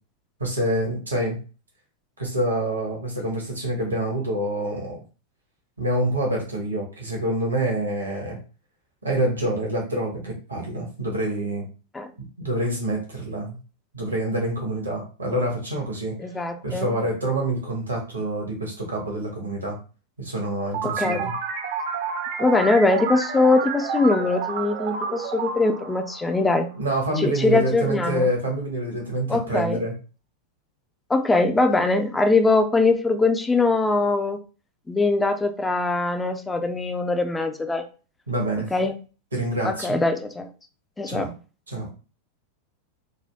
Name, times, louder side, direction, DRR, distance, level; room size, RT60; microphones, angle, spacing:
voice 1, 0.4-1.4 2.2-5.0 5.8-8.4 9.0-11.6 12.2-13.6 13.9-16.2 16.6-19.8 20.2-21.3 26.8-29.9 38.3-38.7 39.3-40.0 41.1-41.3 41.7-41.9, right 1 dB, 75° right, -1 dB, 1.2 m, -26 dB
voice 2, 16.2-17.0 20.8-21.3 22.4-26.7 27.2-28.3 29.3-29.8 31.1-34.4 34.9-37.8 38.7-38.9 39.6-40.5 41.0-41.3, left 3 dB, 10° left, 7 dB, 0.5 m, -22 dB
sound 1, 20.7-27.0, right 5 dB, 50° right, 0.7 m, -30 dB
4.1 x 2.2 x 3.4 m, 0.35 s
figure-of-eight pair, 90°, 0 cm